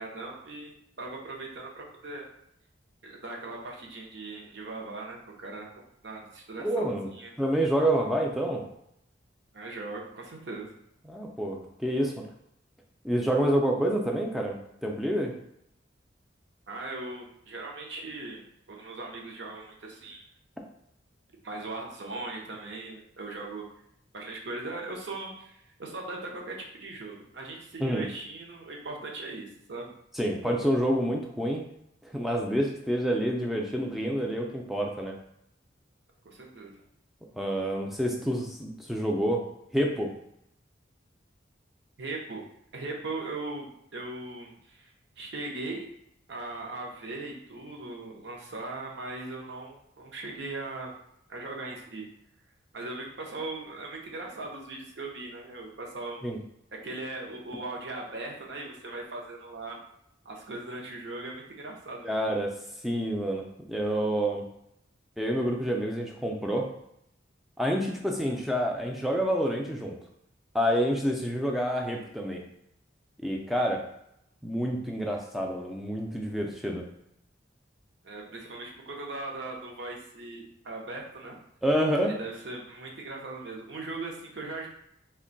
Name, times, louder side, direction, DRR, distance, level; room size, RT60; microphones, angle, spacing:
voice 1, 0.0-2.3 3.0-7.3 9.5-10.7 16.7-18.4 18.7-20.3 21.4-23.7 24.1-29.9 36.2-36.8 42.0-42.4 42.7-45.9 46.3-50.9 51.3-52.1 52.7-56.2 56.8-59.8 60.2-62.2 78.0-81.4 82.0-84.7, right 2 dB, 65° right, -1 dB, 0.6 m, -39 dB
voice 2, 6.6-7.1 7.4-8.6 11.1-12.2 13.0-15.3 27.8-28.1 30.1-31.6 32.0-35.1 37.4-39.4 39.7-40.1 56.2-56.4 62.0-62.5 62.8-64.4 65.2-66.7 67.6-70.0 70.5-72.4 73.2-73.8 74.4-76.8 81.6-82.1, equal, ahead, 0 dB, 0.3 m, -28 dB
2.5 x 2.2 x 3.8 m, 0.77 s
head